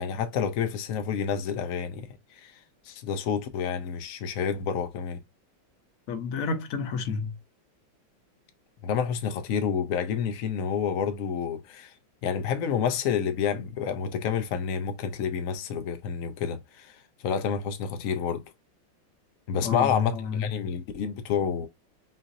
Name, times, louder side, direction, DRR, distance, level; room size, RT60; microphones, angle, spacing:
voice 1, 0.0-2.5 2.9-5.2 8.8-11.9 12.2-18.4 19.5-21.7, left 7 dB, 90° left, 0.7 m, -29 dB
voice 2, 6.1-7.3 19.6-20.4, left 5 dB, 60° left, 0.9 m, -30 dB
5.8 x 2.5 x 2.6 m
omnidirectional pair, 2.2 m